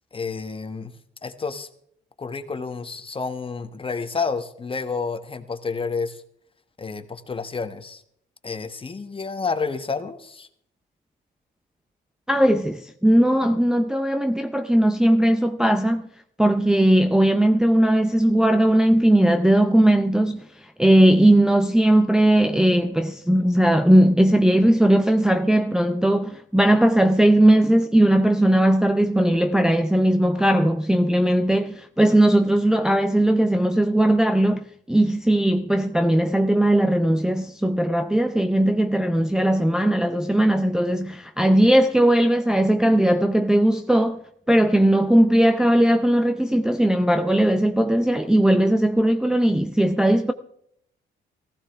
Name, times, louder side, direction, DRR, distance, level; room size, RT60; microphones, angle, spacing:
voice 1, 0.1-0.9 1.2-1.7 2.2-6.2 6.8-8.0 8.4-10.5, left 4 dB, 25° left, 1.2 m, -30 dB
voice 2, 12.3-16.1 16.4-20.4 20.8-44.2 44.5-50.3, right 1 dB, 5° right, 0.6 m, -18 dB
15.5 x 15.0 x 3.5 m
cardioid pair, 90°, 20 cm